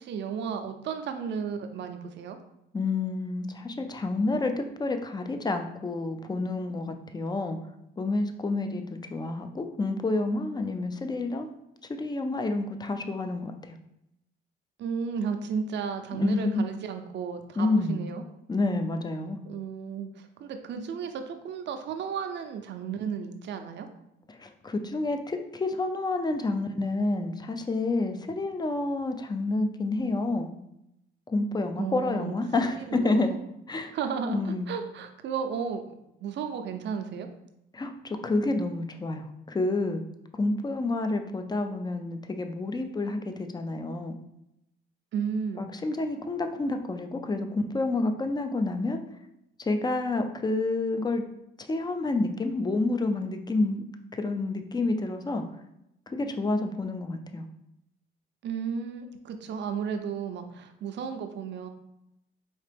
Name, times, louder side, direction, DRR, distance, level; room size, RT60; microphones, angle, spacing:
voice 1, 0.0-2.4 14.8-18.2 19.4-23.9 31.8-32.4 32.8-33.4 33.9-35.9 36.2-37.3 45.1-45.7 58.4-61.7, right 6 dB, 65° right, 6 dB, 0.5 m, -33 dB
voice 2, 2.7-7.6 8.0-11.5 12.0-13.5 16.1-16.6 17.6-18.0 18.5-19.4 24.3-30.5 31.3-33.3 33.7-34.0 34.3-34.7 37.7-40.0 40.4-44.1 45.6-49.0 49.6-51.2 51.7-53.9 54.1-55.4 56.1-57.5, left 2 dB, 20° left, 6 dB, 0.5 m, -29 dB
4.2 x 2.9 x 3.3 m, 0.82 s
cardioid pair, 90°, 20 cm